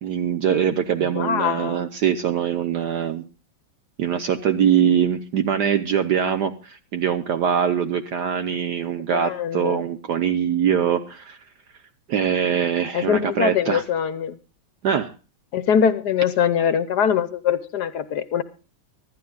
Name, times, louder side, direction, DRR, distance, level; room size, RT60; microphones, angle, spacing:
voice 1, 0.0-3.2 4.0-11.4 12.1-13.8 14.8-15.1, right 8 dB, 60° right, 9 dB, 1.3 m, -23 dB
voice 2, 1.1-1.9 9.1-9.8 12.9-14.4 15.5-18.4, left 8 dB, 65° left, 13 dB, 1.2 m, -22 dB
24.5 x 12.5 x 2.3 m, 0.34 s
omnidirectional pair, 2.2 m